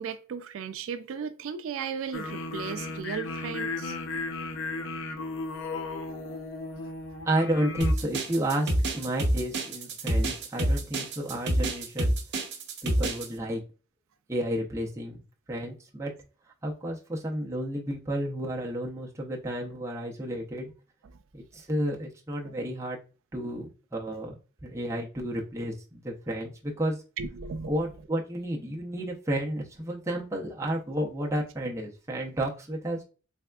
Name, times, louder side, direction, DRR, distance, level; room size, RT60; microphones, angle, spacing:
voice 1, 0.0-4.0 6.8-6.9 22.4-22.5 23.4-23.5 27.2-27.8, right 6 dB, 75° right, 0.3 m, -36 dB
sound 1, 2.1-7.9, left 3 dB, 65° left, 0.5 m, -35 dB
voice 2, 7.2-12.2 12.8-13.6 14.3-15.2 15.5-16.1 16.6-20.7 21.3-23.0 23.3-27.0 27.7-33.0, right 1 dB, 15° right, 0.6 m, -31 dB
sound 2, 7.8-13.3, right 1 dB, 55° right, 0.7 m, -27 dB
3.4 x 3.4 x 2.2 m
head